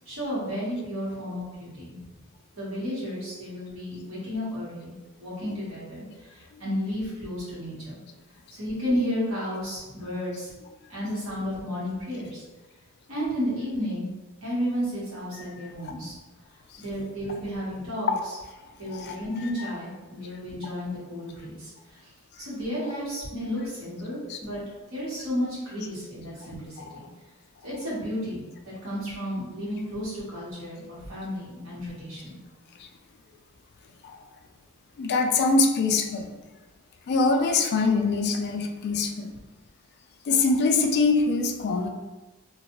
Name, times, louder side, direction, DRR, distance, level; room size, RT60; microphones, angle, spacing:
voice 1, 0.0-2.0 2.5-8.0 8.5-10.5 10.9-12.4 13.1-14.1 14.4-16.1 16.8-18.1 18.8-22.1 22.4-24.6 24.9-27.0 27.6-28.5 28.8-32.4, equal, 70° right, -8 dB, 1.3 m, -32 dB
voice 2, 18.9-19.7 22.8-22.9 24.3-24.4 26.8-27.0 34.0-34.2 35.0-36.3 37.1-39.3 40.3-41.9, left 3 dB, 50° left, 4 dB, 0.3 m, -24 dB
2.4 x 2.3 x 2.9 m, 1.1 s
head